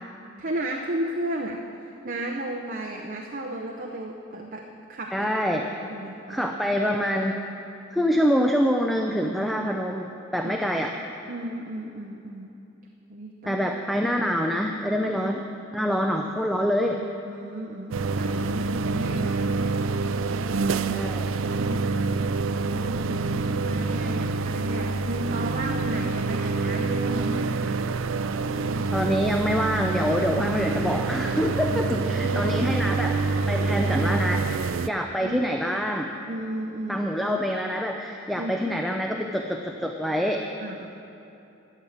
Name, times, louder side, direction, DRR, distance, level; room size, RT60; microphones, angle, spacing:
voice 1, 0.4-5.3 5.8-6.9 10.4-12.5 13.1-13.6 15.0-15.1 16.0-16.1 17.2-19.8 21.6-22.4 22.7-27.7 28.6-28.9 31.7-32.8 33.6-33.9 35.2-35.5 36.3-37.1 38.3-38.6 40.6-40.9, right 1 dB, 45° right, 1 dB, 0.7 m, -34 dB
voice 2, 5.1-5.7 6.3-7.4 7.9-10.1 10.3-10.9 13.5-15.4 15.7-17.0 20.9-21.3 28.9-34.4 34.9-36.1 36.9-40.4, equal, ahead, 2 dB, 0.5 m, -25 dB
sound 1, 17.9-34.9, right 3 dB, 90° right, 0.4 m, -26 dB
12.5 x 7.4 x 8.0 m, 2.8 s
head